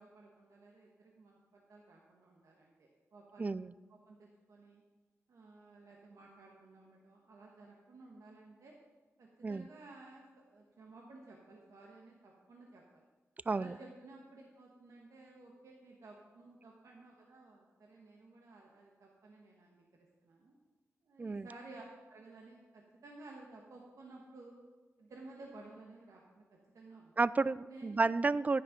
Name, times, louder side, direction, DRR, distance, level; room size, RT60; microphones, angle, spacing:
voice 1, 0.0-3.5 3.9-4.8 5.3-8.8 9.2-13.0 13.5-19.8 20.2-20.5 21.0-24.6 25.0-26.4 26.7-27.1 27.7-28.0, right 2 dB, 75° right, -1 dB, 1.4 m, -55 dB
voice 2, 3.4-3.7 9.4-9.6 13.5-13.7 21.2-21.5 27.2-28.6, right 3 dB, 30° right, 18 dB, 0.3 m, -31 dB
10.5 x 10.0 x 5.1 m, 1.3 s
cardioid pair, 85°, 5 cm